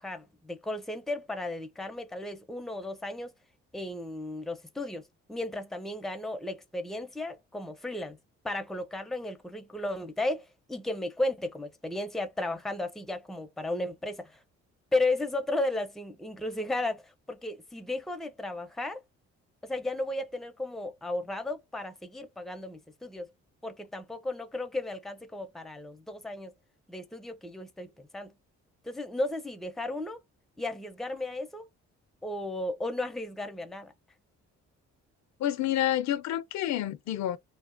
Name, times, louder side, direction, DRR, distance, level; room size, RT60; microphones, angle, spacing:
voice 1, 0.0-3.3 3.7-8.2 8.4-14.4 14.9-17.0 17.3-19.0 19.6-23.3 23.6-26.5 26.9-28.3 28.8-30.2 30.6-31.7 32.2-33.9, left 2 dB, ahead, 0.5 m, -34 dB
voice 2, 35.4-37.4, left 12 dB, 65° left, 0.4 m, -29 dB
2.8 x 2.0 x 2.4 m
cardioid pair, 90°, 30 cm